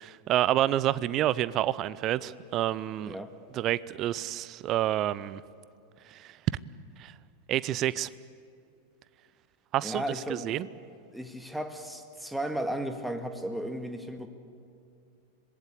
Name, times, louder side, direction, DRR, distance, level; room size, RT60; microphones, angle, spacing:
voice 1, 0.0-3.1 3.5-5.4 6.1-6.4 7.0-7.1 7.5-8.1 9.7-10.0 10.3-10.7, right 13 dB, 35° right, 19 dB, 0.6 m, -28 dB
voice 2, 3.0-3.3 9.8-10.5 11.1-14.3, right 1 dB, ahead, 6 dB, 1.9 m, -35 dB
26.0 x 20.5 x 8.3 m, 2.4 s
figure-of-eight pair, 90°, 0 cm